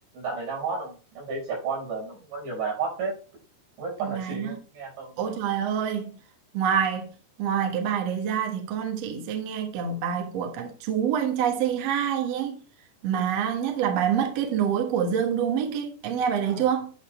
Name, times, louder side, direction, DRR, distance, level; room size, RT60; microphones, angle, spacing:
voice 1, 0.1-3.1 3.8-5.2 16.4-16.7, right 4 dB, 85° right, 7.0 m, -32 dB
voice 2, 4.0-4.6 5.2-6.2 6.5-7.1 7.4-12.6 13.0-16.9, right 8 dB, 65° right, 1.7 m, -26 dB
10.5 x 4.1 x 4.3 m
omnidirectional pair, 4.8 m